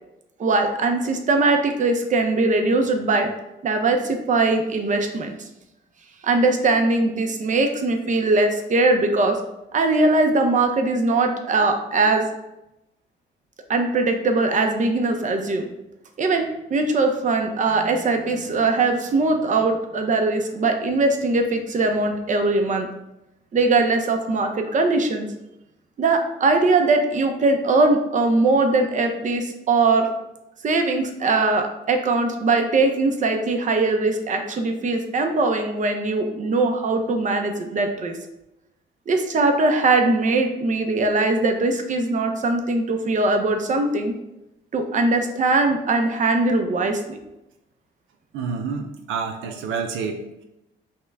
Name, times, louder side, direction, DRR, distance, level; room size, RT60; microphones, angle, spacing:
voice 1, 0.4-3.3 3.6-5.4 6.2-9.4 9.7-12.2 13.7-15.7 16.2-22.9 23.5-25.3 26.0-30.1 30.6-38.2 39.1-44.1 44.7-47.2, right 3 dB, 40° right, 5 dB, 0.6 m, -21 dB
voice 2, 48.3-50.4, right 5 dB, 85° right, 4 dB, 0.5 m, -29 dB
5.6 x 2.2 x 3.5 m, 0.91 s
cardioid pair, 90°, 20 cm